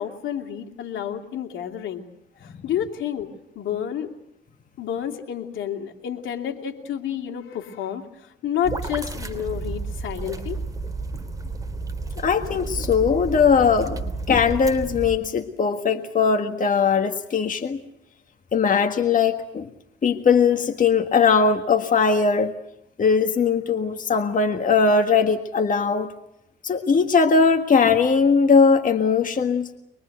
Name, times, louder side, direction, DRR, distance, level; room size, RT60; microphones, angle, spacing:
voice 1, 0.0-2.0 2.4-4.1 4.8-10.6, left 9 dB, 80° left, 4 dB, 2.8 m, -30 dB
sound 1, 8.6-15.2, right 3 dB, 15° right, 3.4 m, -32 dB
voice 2, 12.2-17.8 18.5-19.7 20.0-22.5 23.0-26.1 26.6-29.7, left 5 dB, 40° left, 5 dB, 1.6 m, -20 dB
24.0 x 23.0 x 8.0 m, 0.80 s
cardioid pair, 90°, 20 cm